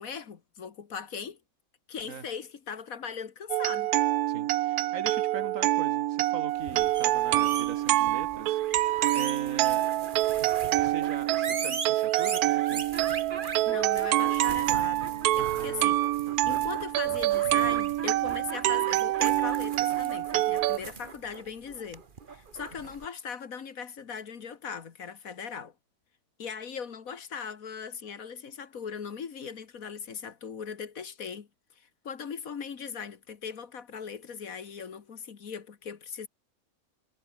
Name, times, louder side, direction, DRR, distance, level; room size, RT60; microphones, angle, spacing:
voice 1, 0.0-1.4 1.9-3.9 6.7-6.8 13.7-16.0 16.5-22.0 22.3-25.7 26.4-31.5 31.8-36.3, left 6 dB, 65° left, 1.9 m, -39 dB
sound 1, 3.5-20.8, right 15 dB, 85° right, 1.1 m, -26 dB
voice 2, 4.3-9.8 10.8-12.8 15.4-15.9, right 6 dB, 60° right, 1.8 m, -41 dB
sound 2, 6.5-23.1, right 5 dB, 35° right, 1.3 m, -40 dB
omnidirectional pair, 1.6 m